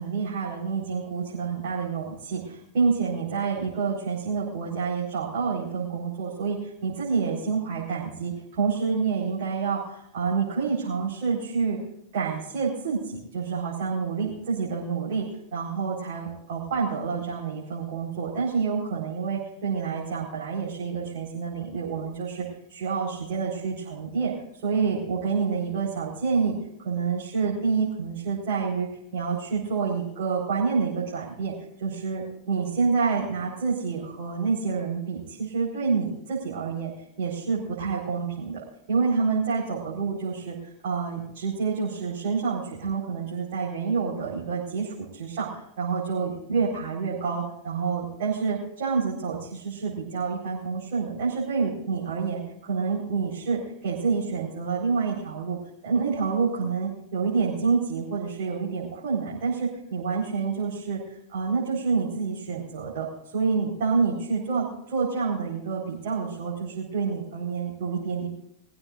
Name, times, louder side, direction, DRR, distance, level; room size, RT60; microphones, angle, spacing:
voice 1, 0.0-11.8 12.1-15.3 15.5-26.5 26.8-36.9 37.2-40.6 40.8-45.5 45.8-55.6 55.8-63.1 63.3-68.3, right 5 dB, 55° right, -5 dB, 4.6 m, -28 dB
22.5 x 15.5 x 2.6 m, 0.73 s
figure-of-eight pair, 90°, 0 cm